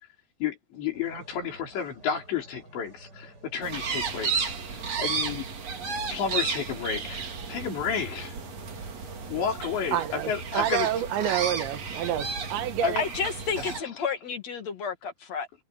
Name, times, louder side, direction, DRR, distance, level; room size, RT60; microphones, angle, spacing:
voice 1, 0.4-5.5 5.9-8.4 9.3-10.9 11.2-11.4 12.8-13.0 13.6-13.8, left 7 dB, 80° left, 6.8 m, -32 dB
sound 1, 0.9-10.0, right 2 dB, 20° right, 7.5 m, -52 dB
sound 2, 3.6-13.8, right 5 dB, 40° right, 3.5 m, -33 dB
voice 2, 9.9-13.0, right 11 dB, 90° right, 3.9 m, -28 dB
voice 3, 13.0-15.6, left 6 dB, 45° left, 2.8 m, -31 dB
omnidirectional pair, 5.0 m